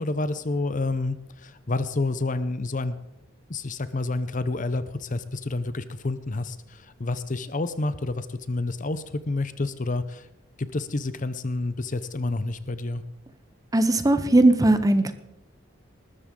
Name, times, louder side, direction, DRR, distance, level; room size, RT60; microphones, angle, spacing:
voice 1, 0.0-3.0 3.5-10.3 10.6-13.0, left 2 dB, 40° left, 13 dB, 0.7 m, -29 dB
voice 2, 13.7-15.1, right 2 dB, 20° right, 10 dB, 1.0 m, -18 dB
20.0 x 13.0 x 3.8 m, 0.85 s
head